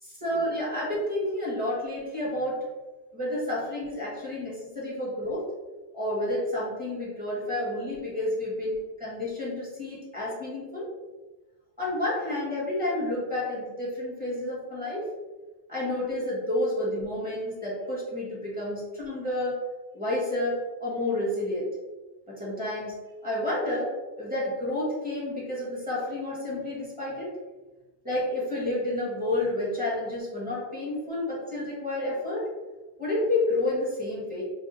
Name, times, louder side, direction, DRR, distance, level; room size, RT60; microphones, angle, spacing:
voice 1, 0.2-2.6 3.1-5.5 5.9-10.9 11.8-15.1 15.7-19.6 19.9-21.7 22.3-22.9 23.2-23.9 24.2-27.3 28.0-32.5 33.0-34.4, left 1 dB, 10° right, -7 dB, 1.4 m, -30 dB
3.5 x 2.4 x 4.0 m, 1.2 s
omnidirectional pair, 1.2 m